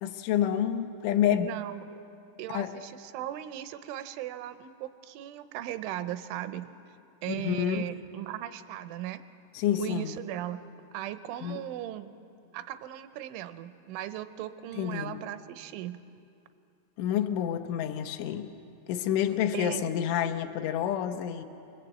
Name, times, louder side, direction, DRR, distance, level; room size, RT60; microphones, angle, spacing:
voice 1, 0.0-1.5 2.5-2.7 7.3-7.8 9.5-10.2 11.4-11.6 14.8-15.2 17.0-18.5 18.9-21.5, left 10 dB, 80° left, 7 dB, 3.2 m, -28 dB
voice 2, 1.3-1.9 2.4-6.7 7.2-9.2 9.8-10.6 10.9-12.1 12.5-16.0 19.5-19.9, right 12 dB, 80° right, 11 dB, 3.1 m, -37 dB
25.5 x 21.0 x 8.3 m, 2.6 s
omnidirectional pair, 5.6 m